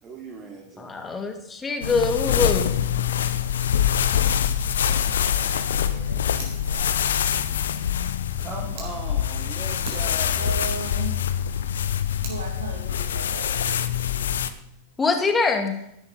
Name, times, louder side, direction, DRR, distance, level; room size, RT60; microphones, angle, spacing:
voice 1, 0.0-1.2 8.4-10.7 15.5-15.6, right 4 dB, 25° right, -1 dB, 2.7 m, -39 dB
voice 2, 0.8-2.8 15.0-15.8, left 4 dB, 15° left, 5 dB, 2.3 m, -24 dB
sound 1, 1.8-14.5, left 9 dB, 65° left, 0.9 m, -25 dB
voice 3, 4.8-7.1 10.4-11.3 12.2-13.8, right 4 dB, 70° right, 1 dB, 2.1 m, -38 dB
Fire, 6.4-8.9 9.4-9.5 9.8-12.4, right 4 dB, 50° right, 4.5 m, -44 dB
15.0 x 11.5 x 4.0 m, 0.80 s
figure-of-eight pair, 90°, 0 cm